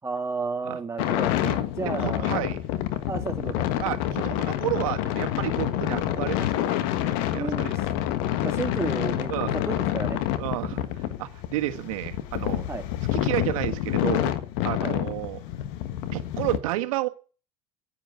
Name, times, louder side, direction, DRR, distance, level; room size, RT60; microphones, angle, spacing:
voice 1, 0.0-1.3 1.8-2.4 3.1-3.6 7.4-7.7 8.4-9.3 9.6-10.2 12.7-12.8 14.8-15.0, right 4 dB, 15° right, 6 dB, 2.0 m, -32 dB
sound 1, 1.0-16.6, left 12 dB, 75° left, 1.5 m, -28 dB
voice 2, 1.4-2.6 3.8-6.8 7.3-7.8 8.3-8.4 9.3-9.6 10.4-10.8 11.2-12.7 13.1-14.3 14.6-15.4 16.1-17.1, right 15 dB, 85° right, 8 dB, 1.5 m, -31 dB
10.0 x 8.3 x 9.6 m, 0.39 s
supercardioid pair, 105°, 17 cm